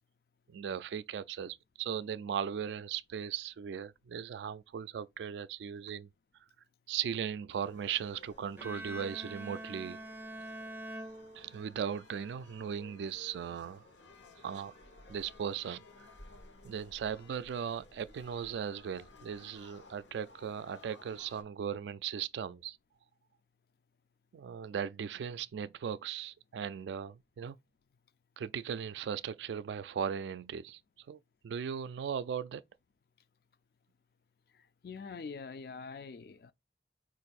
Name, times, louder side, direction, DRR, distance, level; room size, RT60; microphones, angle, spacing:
voice 1, 0.5-6.1 6.9-10.0 11.3-13.8 14.4-14.7 15.1-16.1 16.6-22.8 24.3-27.6 28.4-32.6, right 8 dB, 80° right, 0.3 m, -38 dB
sound 1, 7.5-21.4, left 2 dB, 85° left, 1.0 m, -57 dB
Bowed string instrument, 8.6-11.9, right 1 dB, 10° right, 0.4 m, -45 dB
voice 2, 34.5-36.5, left 5 dB, 55° left, 0.4 m, -45 dB
4.5 x 2.5 x 4.1 m
head